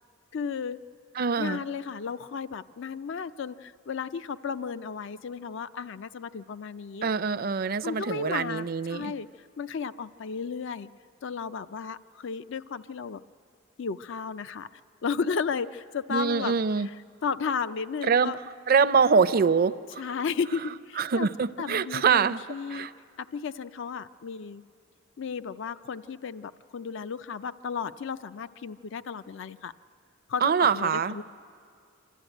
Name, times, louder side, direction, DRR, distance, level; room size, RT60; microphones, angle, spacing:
voice 1, 0.3-0.8 1.4-7.1 7.8-9.3 9.6-10.9 11.2-13.2 13.8-14.7 15.0-16.5 16.9-17.0 17.2-18.4 20.0-21.3 21.6-22.9 23.2-24.6 25.2-29.7 30.3-31.2, left 5 dB, 65° left, 14 dB, 0.4 m, -34 dB
voice 2, 1.2-1.6 7.0-9.1 16.1-16.9 18.0-18.3 18.7-20.0 21.0-22.4 22.7-22.9 30.4-31.1, right 5 dB, 45° right, 12 dB, 0.5 m, -24 dB
26.5 x 13.0 x 9.0 m, 2.3 s
head